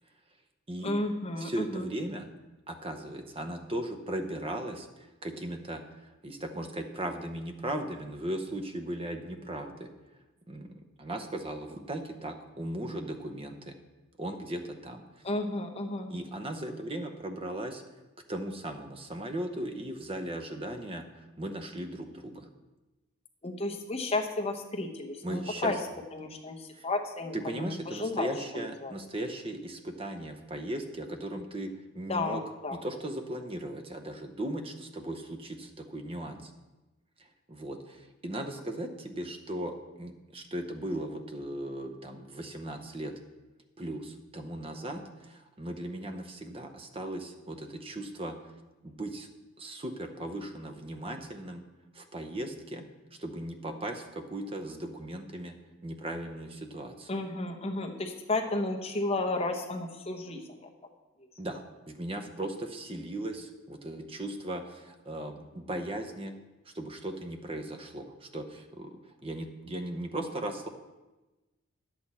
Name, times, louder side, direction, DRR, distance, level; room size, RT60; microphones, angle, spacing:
voice 1, 0.8-1.9 15.2-16.1 23.4-25.8 26.1-28.9 32.1-32.8 57.1-60.4, left 2 dB, 30° left, 2 dB, 0.9 m, -33 dB
voice 2, 1.4-2.3 2.7-4.9 5.2-9.9 10.5-13.8 14.2-15.0 16.1-17.8 18.3-22.5 25.2-25.8 26.8-26.9 27.3-32.4 32.7-36.5 37.5-43.1 43.8-48.4 48.8-49.3 49.6-51.6 51.9-52.9 53.2-55.6 55.8-57.2 61.4-66.4 66.7-70.7, right 1 dB, 25° right, 6 dB, 0.8 m, -37 dB
10.0 x 8.1 x 4.2 m, 1.1 s
head